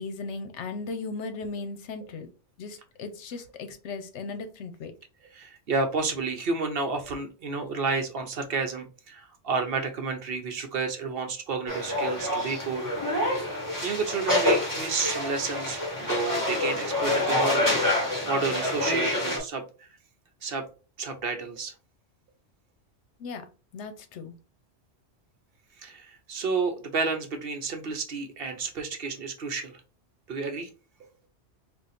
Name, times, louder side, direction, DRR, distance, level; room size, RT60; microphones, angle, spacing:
voice 1, 0.0-2.3 2.6-4.9 23.2-23.4 23.7-24.3, left 4 dB, 75° left, 8 dB, 0.9 m, -37 dB
voice 2, 5.3-12.9 13.8-17.7 18.3-19.9 20.4-20.6 21.0-21.7 25.8-29.8 30.3-30.7, right 4 dB, 60° right, 5 dB, 0.8 m, -31 dB
sound 1, 11.7-19.4, left 1 dB, 15° left, 1.4 m, -27 dB
3.7 x 2.4 x 4.0 m, 0.35 s
omnidirectional pair, 1.2 m